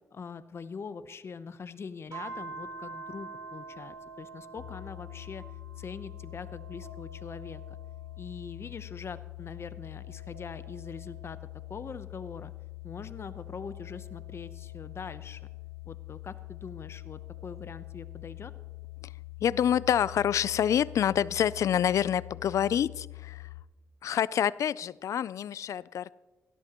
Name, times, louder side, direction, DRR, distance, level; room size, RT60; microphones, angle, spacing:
voice 1, 0.1-5.4 5.8-7.8 8.2-11.4 11.7-12.5 12.8-15.4 15.9-18.5, left 5 dB, 50° left, 13 dB, 0.8 m, -43 dB
sound 1, 2.1-8.8 9.3-12.2 12.8-15.5 16.3-18.7 20.1-21.2, right 4 dB, 70° right, 4.5 m, -49 dB
sound 2, 4.6-23.6, left 23 dB, 90° left, 0.9 m, -44 dB
voice 2, 19.4-23.5 24.0-26.1, left 9 dB, 70° left, 21 dB, 0.3 m, -27 dB
18.0 x 13.0 x 3.0 m, 1.2 s
cardioid pair, 70°, 6 cm